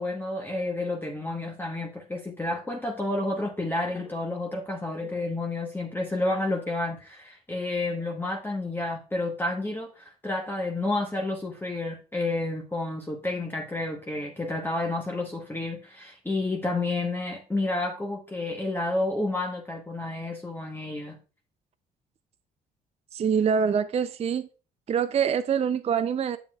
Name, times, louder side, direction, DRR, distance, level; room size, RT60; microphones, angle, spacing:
voice 1, 0.0-21.2, left 2 dB, 10° left, 1.2 m, -30 dB
voice 2, 23.1-24.5 24.9-26.4, right 7 dB, 35° right, 0.5 m, -25 dB
7.2 x 7.1 x 2.4 m
supercardioid pair, 65°, 17 cm